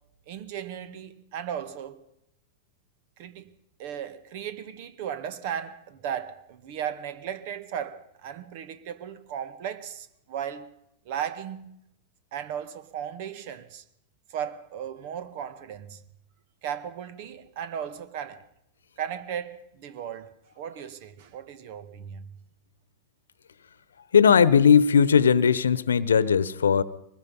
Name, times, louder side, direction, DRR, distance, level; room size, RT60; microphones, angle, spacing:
voice 1, 0.3-2.0 3.2-3.5 3.8-10.7 11.1-11.8 12.3-13.8 14.3-16.0 16.6-18.4 19.0-20.3 20.6-22.3, right 9 dB, 55° right, 1.9 m, -36 dB
voice 2, 24.1-26.8, left 7 dB, 80° left, 1.1 m, -18 dB
23.5 x 20.5 x 5.5 m
hypercardioid pair, 100°, 0 cm